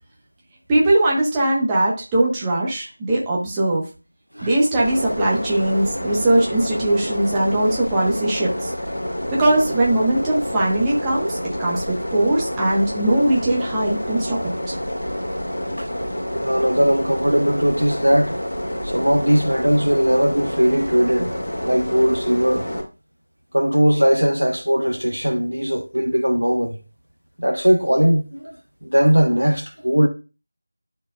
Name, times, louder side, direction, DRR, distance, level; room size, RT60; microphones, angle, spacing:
voice 1, 0.7-3.8 4.4-8.7 9.4-14.4 14.7-14.8, right 1 dB, 10° right, 1.3 m, -20 dB
sound 1, 4.8-22.8, equal, 50° left, 2.3 m, -28 dB
voice 2, 16.3-18.4 18.8-21.3 21.6-22.7 23.5-26.8 27.4-30.1, equal, 90° right, 1.3 m, -19 dB
12.5 x 4.7 x 2.4 m
figure-of-eight pair, 170°, 0 cm